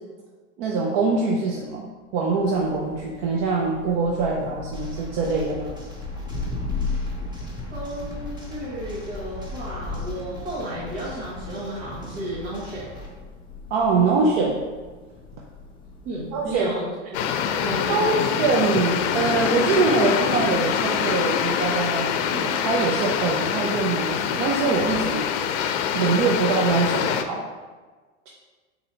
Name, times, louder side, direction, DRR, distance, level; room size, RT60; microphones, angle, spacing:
voice 1, 0.6-1.8 2.1-5.7 13.7-14.6 16.3-16.7 17.9-25.3 25.9-27.4, right 4 dB, 55° right, -2 dB, 0.7 m, -23 dB
Thunder, 2.3-16.9, left 3 dB, 15° left, 0.5 m, -36 dB
sound 1, 4.7-13.1, left 1 dB, 10° right, 0.9 m, -41 dB
voice 2, 7.7-12.9 16.0-16.9 17.6-18.4, equal, 75° right, -8 dB, 1.3 m, -33 dB
sound 2, 17.1-27.2, left 8 dB, 70° left, 0.5 m, -25 dB
4.1 x 2.7 x 4.3 m, 1.4 s
hypercardioid pair, 115°, 36 cm